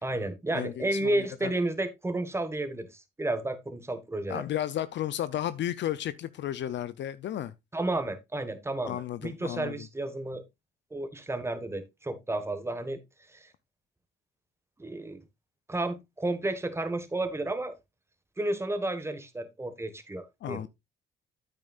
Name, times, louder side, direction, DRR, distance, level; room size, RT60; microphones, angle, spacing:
voice 1, 0.0-4.4 7.7-10.4 10.9-13.0 13.3-13.5 14.8-15.2 15.7-17.7 18.4-20.7, right 2 dB, 15° right, 1.5 m, -32 dB
voice 2, 0.5-1.5 4.3-7.5 8.8-9.9 20.4-20.7, left 11 dB, 65° left, 0.6 m, -33 dB
9.2 x 8.8 x 2.4 m
cardioid pair, 90°, 20 cm